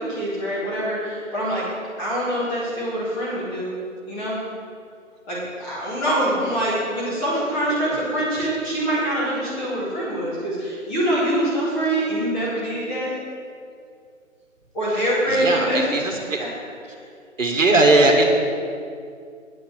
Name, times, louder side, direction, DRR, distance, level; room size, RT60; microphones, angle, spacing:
voice 1, 0.0-1.6 2.0-3.7 4.0-4.4 5.3-13.1 14.7-16.0, right 1 dB, 10° left, -9 dB, 2.1 m, -24 dB
voice 2, 14.9-16.4 17.4-18.3, right 2 dB, 75° right, 3 dB, 1.8 m, -19 dB
9.0 x 6.5 x 7.5 m, 2.3 s
figure-of-eight pair, 160°, 39 cm